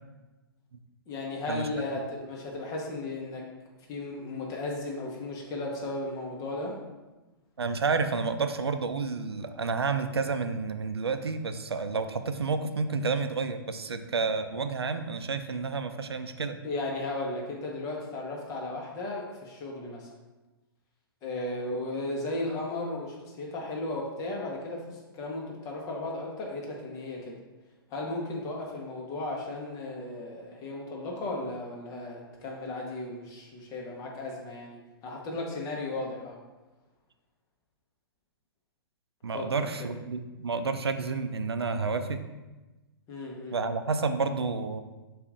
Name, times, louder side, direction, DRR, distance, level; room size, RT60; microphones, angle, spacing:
voice 1, 1.1-3.4 3.9-6.8 16.6-20.1 21.2-27.3 27.9-36.4 39.3-39.5 39.8-39.9 43.1-43.6, left 2 dB, 25° left, -1 dB, 0.9 m, -35 dB
voice 2, 7.6-16.6 39.2-42.2 43.5-44.8, right 4 dB, 90° right, 9 dB, 0.4 m, -30 dB
6.8 x 2.5 x 2.5 m, 1.1 s
hypercardioid pair, 120°, 13 cm